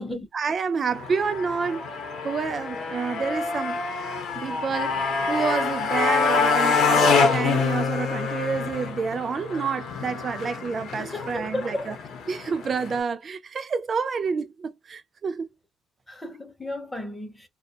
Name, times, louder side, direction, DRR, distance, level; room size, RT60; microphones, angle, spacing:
voice 1, 0.3-1.9 2.2-3.8 4.4-12.0 12.3-15.5, right 5 dB, 30° right, 0.3 m, -29 dB
Motorcycle, 0.9-13.0, left 4 dB, 60° left, 0.8 m, -26 dB
voice 2, 11.0-11.9 16.1-17.5, left 1 dB, 5° left, 0.6 m, -34 dB
2.3 x 2.2 x 2.7 m
cardioid pair, 155°, 0 cm